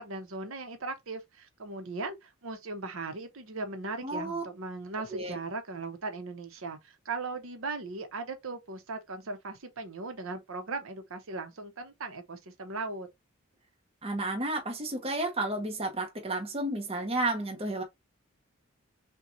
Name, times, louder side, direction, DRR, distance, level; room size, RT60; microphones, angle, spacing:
voice 1, 0.0-13.1, right 3 dB, 70° right, 0.8 m, -38 dB
voice 2, 4.0-4.4 5.1-5.4 14.0-17.8, right 2 dB, 25° right, 0.8 m, -32 dB
5.7 x 2.2 x 2.6 m
head